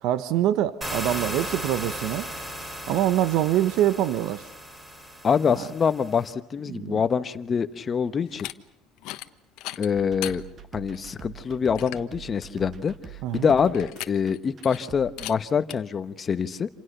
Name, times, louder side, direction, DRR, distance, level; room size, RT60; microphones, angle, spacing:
voice 1, 0.0-2.3 2.9-4.5 5.5-5.6 6.7-7.0 13.2-13.5, right 12 dB, 70° right, 12 dB, 1.0 m, -24 dB
sound 1, 0.8-6.3, equal, 15° right, 5.3 m, -36 dB
voice 2, 5.2-8.5 9.8-10.4 10.7-12.9 13.3-16.7, left 6 dB, 30° left, 12 dB, 1.1 m, -25 dB
sound 2, 8.3-8.5 9.0-9.3 9.6-10.4 10.9-11.0 11.4-11.5 11.8-12.1 13.7-14.4 14.6-14.9 15.2-15.3 15.7-15.8, left 17 dB, 75° left, 1.2 m, -37 dB
sound 3, 9.9-15.3, right 9 dB, 35° right, 2.0 m, -44 dB
28.0 x 28.0 x 6.7 m, 0.72 s
cardioid pair, 145°, 0 cm